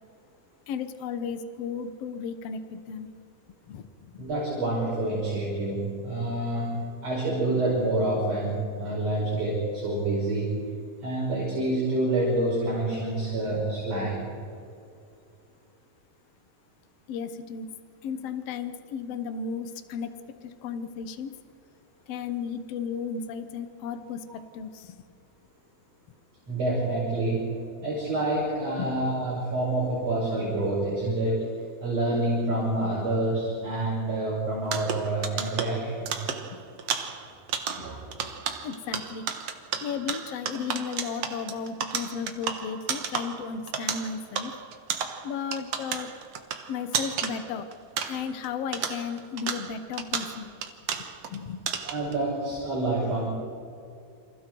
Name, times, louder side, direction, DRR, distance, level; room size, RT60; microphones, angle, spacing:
voice 1, 0.7-3.1 3.6-4.2 17.1-17.7 18.0-20.1 20.4-21.3 22.1-25.0 27.8-27.9 28.8-28.9 36.5-36.6 37.7-37.9 38.6-39.2 39.8-44.5 45.2-46.1 46.7-47.7 48.1-50.5 51.0-51.1 51.3-51.6, left 6 dB, 75° left, 9 dB, 1.4 m, -34 dB
voice 2, 4.2-10.5 11.0-14.3 26.5-31.5 31.8-36.2 37.7-38.1 51.8-53.3, right 2 dB, 40° right, -6 dB, 6.6 m, -27 dB
sound 1, 34.6-48.5 48.7-51.4 51.7-52.1, right 7 dB, 60° right, 1.8 m, -33 dB
28.5 x 27.0 x 4.7 m, 2.4 s
omnidirectional pair, 4.6 m